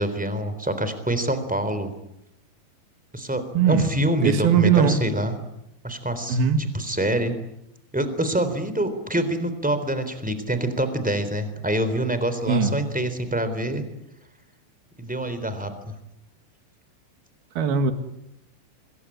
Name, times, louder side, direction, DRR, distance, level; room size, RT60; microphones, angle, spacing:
voice 1, 0.0-1.9 3.1-5.3 5.8-7.3 7.9-13.8 15.0-15.7, right 1 dB, ahead, 10 dB, 2.8 m, -26 dB
voice 2, 3.5-3.9 4.2-5.0 6.3-6.6 12.5-12.7 17.6-17.9, right 7 dB, 60° right, 8 dB, 3.8 m, -19 dB
26.0 x 23.0 x 9.9 m, 0.83 s
omnidirectional pair, 5.2 m